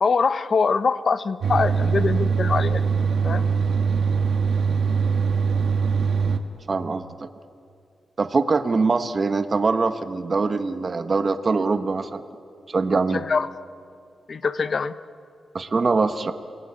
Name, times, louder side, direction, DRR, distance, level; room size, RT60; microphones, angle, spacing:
voice 1, 0.0-2.8 3.2-3.5 13.1-13.5 14.3-14.9, left 5 dB, 50° left, 13 dB, 0.9 m, -23 dB
sound 1, 1.4-6.4, right 5 dB, 75° right, 1.4 m, -22 dB
voice 2, 6.7-7.0 8.2-12.2 12.7-13.2 15.5-16.3, right 4 dB, 40° right, 9 dB, 1.1 m, -23 dB
28.0 x 18.5 x 8.9 m, 2.4 s
cardioid pair, 100°, 0 cm